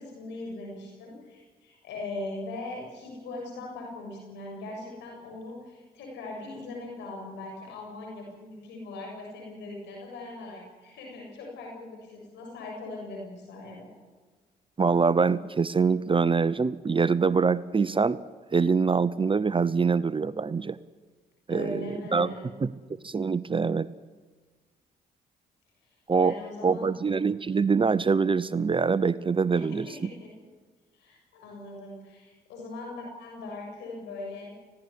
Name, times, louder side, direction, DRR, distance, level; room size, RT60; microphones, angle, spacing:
voice 1, 0.0-13.9 21.5-22.5 26.2-26.9 29.5-30.3 30.9-34.5, left 2 dB, 85° left, 0 dB, 7.1 m, -40 dB
voice 2, 14.8-18.2 18.5-20.8 21.5-22.3 22.6-22.7 23.0-23.9 26.1-26.3 26.6-29.9, right 5 dB, 30° right, 16 dB, 0.8 m, -24 dB
19.5 x 16.5 x 9.7 m, 1.4 s
supercardioid pair, 60°, 18 cm